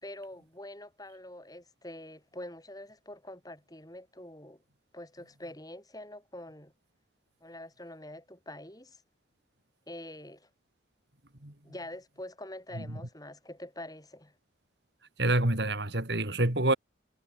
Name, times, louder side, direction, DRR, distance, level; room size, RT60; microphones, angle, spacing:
voice 1, 0.0-4.6 4.9-6.7 7.4-9.0 9.9-10.5 11.6-14.3, left 1 dB, 20° left, 4.8 m, -45 dB
voice 2, 15.2-16.8, right 2 dB, 60° right, 3.1 m, -27 dB
head